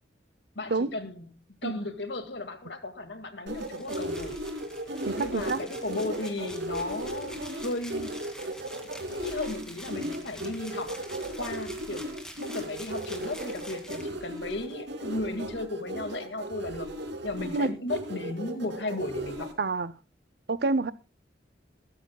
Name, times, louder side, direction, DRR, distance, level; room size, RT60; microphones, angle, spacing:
voice 1, 0.6-1.3 1.6-4.3 5.2-8.1 9.1-11.0 11.4-12.1 12.4-16.9 17.2-19.5, left 2 dB, 85° left, 2.1 m, -35 dB
sound 1, 3.5-19.5, right 1 dB, 85° right, 2.8 m, -36 dB
sound 2, 3.6-14.7, equal, 5° left, 2.4 m, -47 dB
voice 2, 5.0-5.6 17.5-17.7 19.6-19.9 20.5-20.9, right 3 dB, 65° right, 0.7 m, -27 dB
21.0 x 13.0 x 2.3 m
head